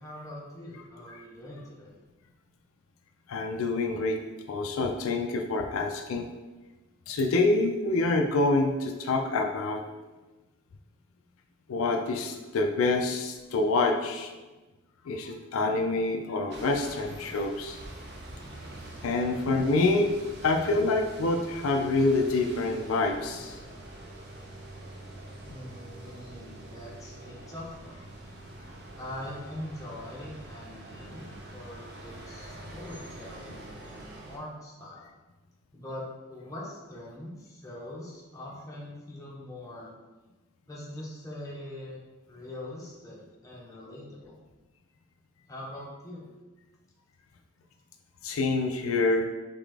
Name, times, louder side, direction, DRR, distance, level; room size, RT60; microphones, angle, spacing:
voice 1, 0.0-1.9 19.3-19.4 25.4-28.0 29.0-31.3 31.5-35.1 35.7-39.9 40.7-42.0 42.3-44.4 45.5-46.3, left 1 dB, 15° left, -5 dB, 0.9 m, -43 dB
voice 2, 3.3-4.2 4.5-6.3 7.1-9.8 11.7-14.3 15.1-17.8 19.0-20.1 20.4-23.6 48.2-49.3, left 3 dB, 85° left, 3 dB, 0.4 m, -26 dB
sound 1, 16.5-34.4, right 1 dB, 50° right, 0.7 m, -45 dB
3.9 x 3.6 x 3.4 m, 1.2 s
head